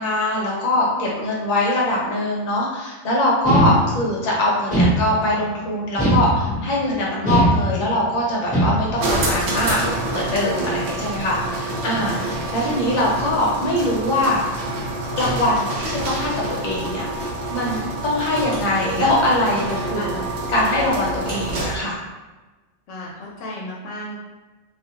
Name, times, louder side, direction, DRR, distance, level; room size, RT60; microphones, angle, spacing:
voice 1, 0.0-14.4 15.2-16.3 16.6-17.2 17.5-20.2 20.5-22.0, left 1 dB, 45° left, -5 dB, 0.7 m, -22 dB
sound 1, 3.4-4.2 4.7-5.5 6.0-6.8 7.2-8.1 8.5-9.1, right 1 dB, 10° right, 0.7 m, -20 dB
sound 2, 9.0-21.9, right 2 dB, 70° right, 0.9 m, -27 dB
voice 2, 11.9-12.5 19.9-20.3 22.9-24.1, left 1 dB, 70° left, -3 dB, 0.9 m, -34 dB
2.3 x 2.3 x 2.8 m, 1.2 s
omnidirectional pair, 1.3 m